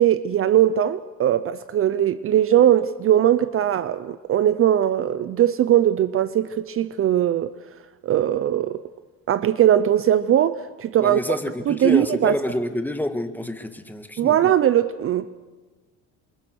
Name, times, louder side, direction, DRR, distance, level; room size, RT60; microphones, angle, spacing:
voice 1, 0.0-7.5 8.0-8.8 9.3-11.4 11.7-12.4 14.2-15.3, right 11 dB, 40° right, 0.7 m, -20 dB
voice 2, 11.0-14.4, left 1 dB, 5° left, 1.7 m, -28 dB
28.0 x 24.5 x 6.4 m
cardioid pair, 120°, 34 cm